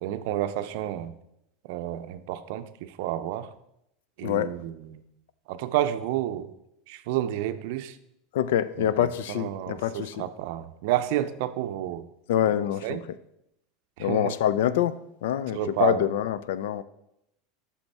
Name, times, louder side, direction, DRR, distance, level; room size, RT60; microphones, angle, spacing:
voice 1, 0.0-1.1 1.7-3.5 4.2-5.0 5.5-6.5 6.9-7.9 8.8-12.1 12.8-13.0 14.0-14.4 15.5-16.0, right 12 dB, 60° right, 11 dB, 0.5 m, -30 dB
voice 2, 8.3-10.3 12.3-13.0 14.0-16.8, left 11 dB, 80° left, 16 dB, 0.4 m, -26 dB
8.0 x 5.9 x 4.1 m, 0.81 s
supercardioid pair, 165°, 0 cm